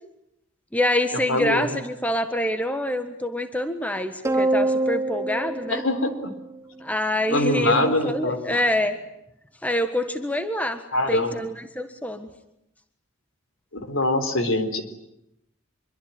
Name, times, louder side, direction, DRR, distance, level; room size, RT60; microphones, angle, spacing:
voice 1, 0.7-5.8 6.8-9.0 9.6-10.8 11.1-12.3, left 1 dB, 5° left, 8 dB, 1.5 m, -26 dB
voice 2, 1.3-1.8 5.7-6.1 7.3-8.6 10.9-11.4 13.7-14.8, left 1 dB, 75° left, 9 dB, 3.9 m, -23 dB
sound 1, 4.2-6.8, right 2 dB, 15° right, 1.0 m, -25 dB
25.5 x 24.0 x 9.6 m, 0.82 s
head